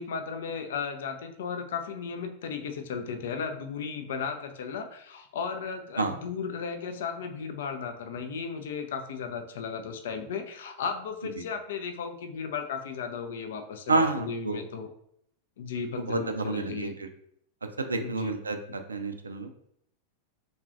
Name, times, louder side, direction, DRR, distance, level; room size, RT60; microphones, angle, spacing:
voice 1, 0.0-14.9 15.6-16.9 17.9-18.3, left 6 dB, 60° left, 7 dB, 0.4 m, -35 dB
voice 2, 13.9-14.6 16.0-17.1 17.8-19.5, right 3 dB, 75° right, 7 dB, 0.3 m, -29 dB
3.6 x 2.3 x 2.5 m, 0.71 s
figure-of-eight pair, 90°, 0 cm